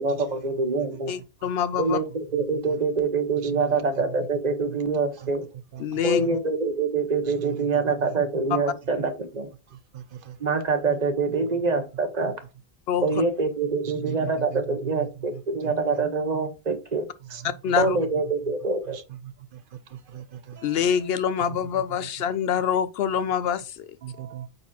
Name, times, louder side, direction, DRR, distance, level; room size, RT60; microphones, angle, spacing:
voice 1, 0.0-1.1 1.8-5.4 6.0-9.5 10.4-12.3 13.0-17.1 17.8-19.0, right 4 dB, 45° right, 1.2 m, -25 dB
voice 2, 1.1-2.0 5.8-6.2 12.9-13.0 17.6-18.0 20.6-23.9, left 8 dB, 75° left, 0.8 m, -25 dB
voice 3, 3.4-4.3 4.7-4.8 5.2-5.3 5.7-6.3 7.3-8.2 9.7-10.4 11.3-11.7 12.2-12.3 13.1-13.2 13.8-16.0 17.2-18.1 18.9-21.1 21.5-22.1 24.0-24.5, right 11 dB, 65° right, 0.7 m, -40 dB
8.8 x 4.1 x 2.8 m
omnidirectional pair, 1.0 m